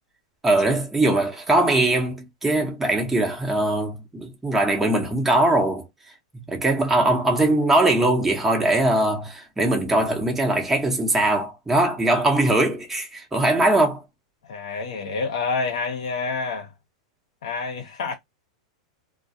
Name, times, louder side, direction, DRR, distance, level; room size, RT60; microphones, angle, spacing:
voice 1, 0.4-5.9 6.5-14.0, right 1 dB, 10° right, 0.9 m, -21 dB
voice 2, 14.4-16.7 17.4-18.1, left 4 dB, 80° left, 0.7 m, -28 dB
2.2 x 2.1 x 2.7 m
hypercardioid pair, 125°, 3 cm